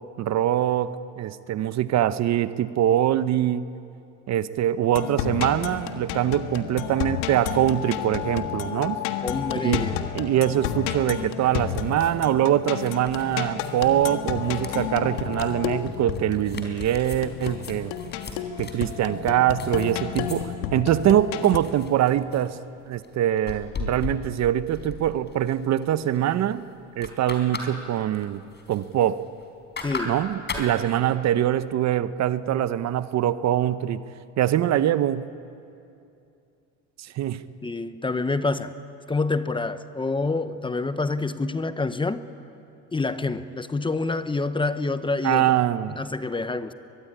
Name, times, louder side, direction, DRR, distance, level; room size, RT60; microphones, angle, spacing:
voice 1, 0.2-3.6 4.3-9.0 9.6-9.8 10.1-17.9 18.6-22.6 22.9-26.6 27.0-28.4 28.7-29.2 30.0-34.0 34.4-35.3 37.0-37.4 45.2-46.0, right 11 dB, 50° right, 14 dB, 0.9 m, -23 dB
sound 1, 4.9-21.6, left 10 dB, 85° left, 1.6 m, -31 dB
voice 2, 9.2-10.0 29.8-30.1 37.6-38.7 39.1-42.3 42.9-45.5 45.9-46.7, left 3 dB, 15° left, 12 dB, 0.9 m, -27 dB
sound 2, 11.4-20.4 21.0-22.5 23.0-25.8 26.1-26.5 26.8-27.7 28.0-29.4 29.8-30.7, left 3 dB, 30° left, 4.3 m, -38 dB
22.5 x 22.5 x 10.0 m, 2.6 s
supercardioid pair, 105°, 35 cm